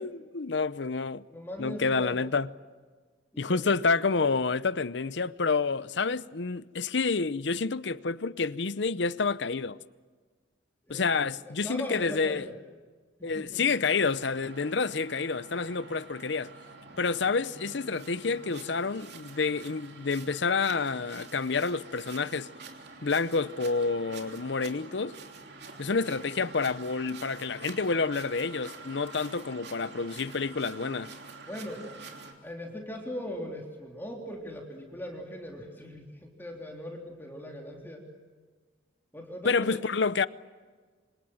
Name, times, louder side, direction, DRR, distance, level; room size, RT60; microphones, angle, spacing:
voice 1, 0.0-1.2 1.6-2.5 3.4-9.8 10.9-12.4 13.2-16.5 17.0-22.5 23.0-25.1 25.8-31.1 39.4-40.3, left 4 dB, 65° left, 0.8 m, -29 dB
voice 2, 1.3-2.2 3.3-3.7 10.8-11.1 11.4-12.5 13.2-13.6 31.5-31.8 32.4-38.1 39.1-39.8, equal, 10° left, 3.5 m, -39 dB
sound 1, 13.9-32.3, right 4 dB, 60° right, 3.2 m, -47 dB
27.5 x 26.0 x 7.9 m
head